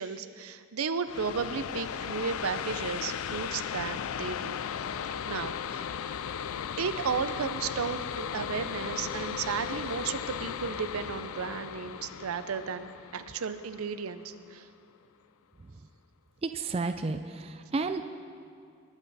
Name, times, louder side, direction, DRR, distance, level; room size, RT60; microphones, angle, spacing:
voice 1, 0.0-4.6 5.2-5.9 6.8-14.7, right 6 dB, 90° right, 12 dB, 0.6 m, -34 dB
sound 1, 1.1-14.4, left 8 dB, 85° left, 0.4 m, -36 dB
voice 2, 16.4-18.0, right 3 dB, 25° right, 9 dB, 0.3 m, -32 dB
21.0 x 8.0 x 4.1 m, 2.3 s
head